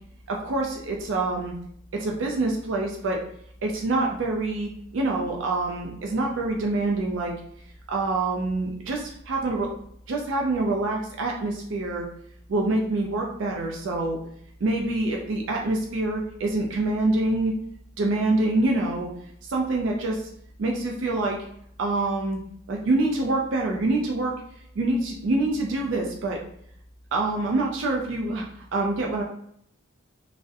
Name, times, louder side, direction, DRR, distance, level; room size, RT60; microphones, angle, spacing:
voice 1, 0.3-1.5 1.9-3.2 3.6-7.3 7.9-9.7 10.1-12.1 12.5-14.2 14.6-17.5 18.0-19.1 19.5-20.3 20.6-21.4 21.8-22.4 22.7-24.3 24.8-26.4 27.1-28.4 28.7-29.2, right 2 dB, 65° right, 0 dB, 0.4 m, -26 dB
2.5 x 2.0 x 2.4 m, 0.68 s
head